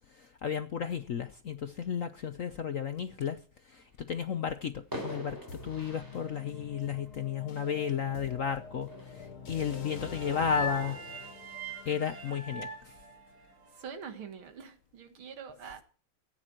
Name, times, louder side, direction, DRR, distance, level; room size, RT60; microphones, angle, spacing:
voice 1, 0.1-11.0 11.8-13.0, left 7 dB, 60° left, 0.9 m, -34 dB
sound 1, 4.1-4.3 4.9-8.1 8.8-9.3, equal, 10° right, 4.3 m, -44 dB
sound 2, 5.5-13.4, left 5 dB, 90° left, 2.2 m, -46 dB
voice 2, 9.6-10.4 13.7-15.8, right 6 dB, 80° right, 2.3 m, -46 dB
sound 3, 9.7-13.9, equal, 50° right, 3.5 m, -41 dB
15.0 x 9.4 x 4.5 m
omnidirectional pair, 2.3 m